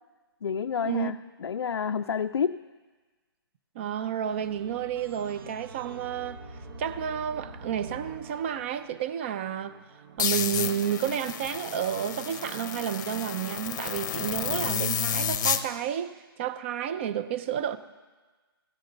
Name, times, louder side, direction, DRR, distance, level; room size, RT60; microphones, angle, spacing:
voice 1, 0.4-2.6, left 7 dB, 85° left, 0.4 m, -29 dB
voice 2, 3.8-6.4 6.8-9.8 10.2-17.8, right 9 dB, 30° right, 0.4 m, -31 dB
sound 1, 4.3-14.3, right 3 dB, 65° right, 0.9 m, -46 dB
sound 2, 10.2-15.6, left 8 dB, 45° left, 0.6 m, -31 dB
16.0 x 6.9 x 3.9 m
hypercardioid pair, 150°, 13 cm